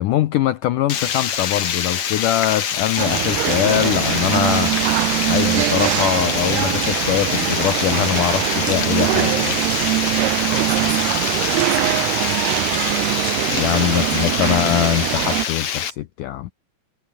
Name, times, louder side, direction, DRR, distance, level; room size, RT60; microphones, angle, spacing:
voice 1, 0.0-4.9 5.2-9.6 13.5-16.5, left 13 dB, 75° left, 1.9 m, -22 dB
Water, 0.9-15.9, left 8 dB, 50° left, 3.1 m, -25 dB
sound 1, 3.0-15.5, right 21 dB, 85° right, 2.7 m, -22 dB
sound 2, 5.5-10.2, right 2 dB, 30° right, 8.8 m, -44 dB
voice 2, 10.5-11.2 11.6-13.2 13.9-14.1, right 8 dB, 55° right, 3.5 m, -35 dB
omnidirectional pair, 4.7 m